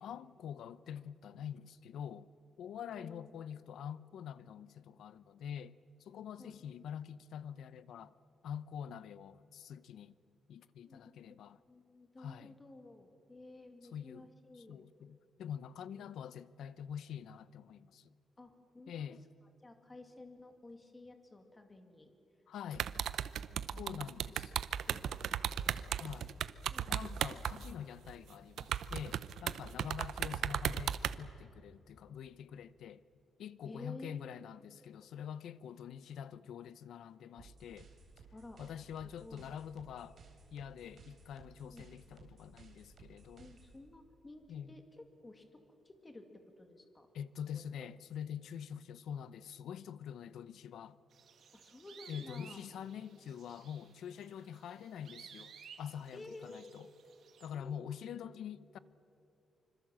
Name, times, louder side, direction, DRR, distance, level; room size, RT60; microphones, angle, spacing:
voice 1, 0.0-2.3 2.6-8.1 8.4-10.2 10.5-11.6 12.2-12.6 13.9-18.1 18.9-19.3 22.5-22.9 23.8-24.5 25.9-26.4 26.9-33.0 33.4-37.9 38.6-40.2 40.5-43.5 44.5-44.8 47.1-51.0 52.1-56.9 57.4-58.8, left 8 dB, 80° left, 0.8 m, -46 dB
voice 2, 2.9-3.9 6.4-6.6 10.8-14.8 15.9-16.1 18.4-19.1 19.6-22.1 23.5-24.1 24.9-26.2 26.7-27.6 30.3-30.4 33.6-34.3 38.3-38.6 39.0-39.5 41.7-41.9 43.1-47.1 47.5-47.8 51.5-52.6 56.1-56.7 57.5-57.8, left 2 dB, 15° left, 2.2 m, -54 dB
sound 1, 22.7-27.7 28.1-28.2 28.6-31.1, right 9 dB, 75° right, 0.7 m, -36 dB
sound 2, 37.4-43.8, right 4 dB, 40° right, 4.2 m, -58 dB
sound 3, 51.1-57.5, right 7 dB, 60° right, 2.3 m, -57 dB
26.0 x 25.5 x 7.6 m
wide cardioid pair, 165°, 0 cm